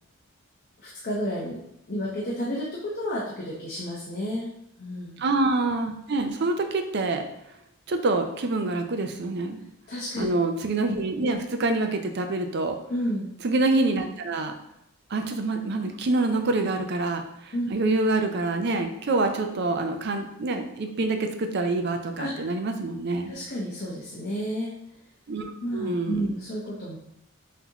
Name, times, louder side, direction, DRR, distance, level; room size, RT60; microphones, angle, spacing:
voice 1, 0.8-1.6 1.9-4.5 4.8-5.2 9.9-10.3 12.9-13.3 17.5-17.7 22.2-22.5 23.3-24.7 25.6-27.0, equal, 45° left, -5 dB, 0.8 m, -31 dB
voice 2, 5.2-7.2 7.9-9.6 10.2-12.8 13.4-14.5 15.1-23.3 25.3-26.2, right 2 dB, 50° right, 6 dB, 0.5 m, -26 dB
5.9 x 2.8 x 2.9 m, 0.81 s
head